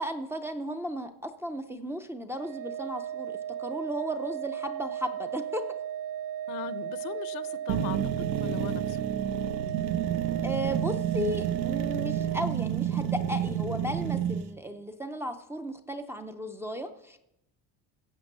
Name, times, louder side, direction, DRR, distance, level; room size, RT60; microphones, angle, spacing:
voice 1, 0.0-5.6 10.4-17.2, equal, 5° right, 0.4 m, -35 dB
Organ, 2.4-13.0, right 10 dB, 40° right, 0.7 m, -36 dB
voice 2, 6.5-8.0 8.4-9.0, left 13 dB, 70° left, 0.8 m, -38 dB
sound 1, 7.7-14.5, right 10 dB, 85° right, 0.9 m, -30 dB
16.5 x 7.4 x 6.6 m
cardioid pair, 165°, 38 cm